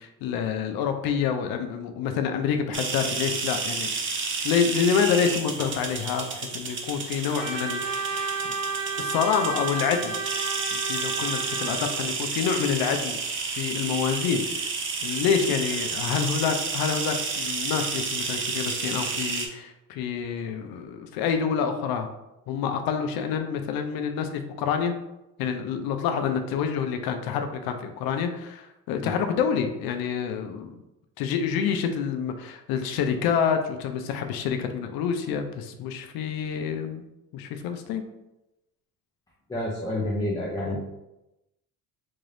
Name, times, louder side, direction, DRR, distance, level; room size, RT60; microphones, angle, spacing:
voice 1, 0.0-3.9 4.4-8.1 8.4-8.5 9.0-10.2 10.7-13.2 13.5-14.7 15.0-22.1 22.5-24.9 25.4-30.7 31.2-37.0 37.3-38.0 40.7-40.8, left 7 dB, 85° left, 6 dB, 0.5 m, -27 dB
sound 1, 2.7-19.5, right 4 dB, 35° right, 0.5 m, -31 dB
Trumpet, 7.3-12.0, right 4 dB, 50° right, 1.0 m, -32 dB
voice 2, 39.5-40.8, left 1 dB, 10° left, -4 dB, 0.6 m, -28 dB
3.6 x 2.6 x 3.3 m, 0.93 s
cardioid pair, 135°, 35 cm